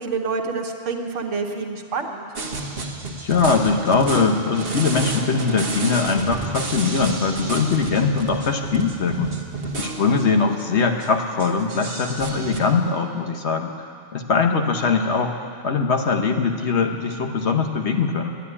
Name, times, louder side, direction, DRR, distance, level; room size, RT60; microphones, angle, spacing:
voice 1, 0.0-2.2, right 4 dB, 70° right, 4 dB, 1.4 m, -27 dB
sound 1, 2.4-10.2 10.6-10.7 11.0-11.1 11.4-12.6, right 3 dB, 50° right, 1.3 m, -30 dB
voice 2, 3.2-9.3 9.8-13.7 14.1-15.4 15.6-18.3, left 4 dB, 60° left, 4 dB, 1.2 m, -21 dB
11.5 x 10.5 x 9.8 m, 2.3 s
omnidirectional pair, 1.3 m